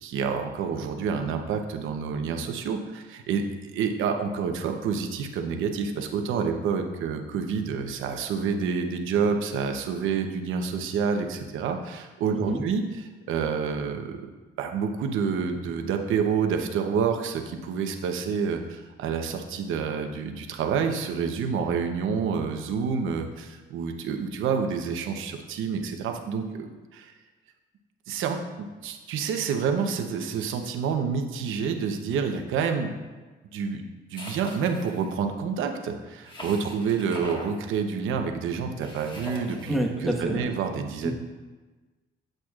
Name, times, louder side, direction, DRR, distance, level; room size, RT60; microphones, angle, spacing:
voice 1, 0.0-14.2 14.6-27.1 28.1-32.9 33.5-33.8 34.1-41.1, right 6 dB, 85° right, 5 dB, 0.9 m, -28 dB
sound 1, 34.1-35.1 36.3-37.5 38.8-39.8, left 1 dB, 25° left, 1.6 m, -41 dB
voice 2, 39.7-40.5 41.0-41.1, right 1 dB, ahead, -1 dB, 1.3 m, -28 dB
9.0 x 7.7 x 2.4 m, 1.3 s
cardioid pair, 90°, 20 cm